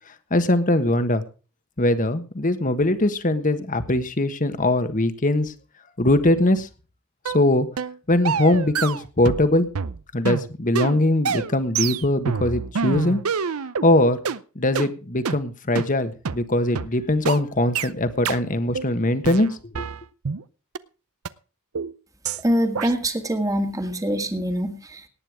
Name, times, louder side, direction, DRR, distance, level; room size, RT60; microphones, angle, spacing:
voice 1, 0.3-1.2 1.8-5.5 6.0-6.7 7.3-7.7 8.1-9.7 10.1-13.2 13.8-14.2 14.5-19.9, left 1 dB, 40° left, 11 dB, 1.4 m, -21 dB
sound 1, 7.3-7.4 7.8-8.0 8.3-9.5 9.7-13.9 14.3-14.4 14.8-14.9 15.3-15.4 15.8-15.9 16.3-16.4 16.8-16.9 17.3-17.4 17.8-17.9 18.3-18.4 18.8-18.9 19.2-20.4 20.8-20.9 21.3-21.4 21.8-21.9 22.3-22.4 22.8-22.9, right 6 dB, 80° right, 0.7 m, -27 dB
voice 2, 22.4-25.1, equal, 15° right, 6 dB, 1.8 m, -24 dB
18.5 x 9.1 x 4.9 m, 0.35 s
head